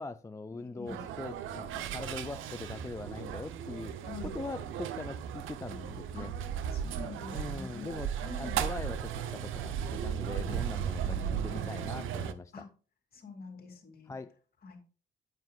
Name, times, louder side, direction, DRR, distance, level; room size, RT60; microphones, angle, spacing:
voice 1, 0.0-4.1 4.3-6.3 7.3-8.1 8.4-11.2 11.4-12.5 14.1-14.3, left 3 dB, 15° left, 0.4 m, -42 dB
voice 2, 0.5-1.0 3.8-4.4 6.1-6.3 6.7-8.6 10.5-10.6 11.0-11.7 12.5-12.7 13.1-14.1 14.6-14.8, left 4 dB, 50° left, 2.3 m, -46 dB
sound 1, 0.9-12.3, right 9 dB, 85° right, 0.7 m, -36 dB
9.2 x 7.9 x 2.4 m
cardioid pair, 90°, 20 cm